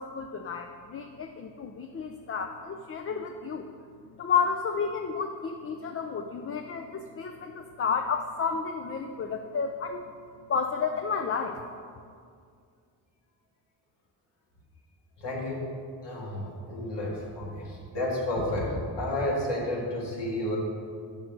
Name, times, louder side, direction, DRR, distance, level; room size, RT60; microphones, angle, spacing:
voice 1, 0.0-3.7 4.1-10.0 10.5-11.6, left 5 dB, 30° left, 5 dB, 0.5 m, -31 dB
voice 2, 15.2-15.7 16.0-20.6, left 1 dB, 70° left, -3 dB, 1.9 m, -31 dB
6.2 x 5.1 x 6.0 m, 2.2 s
supercardioid pair, 55°, 44 cm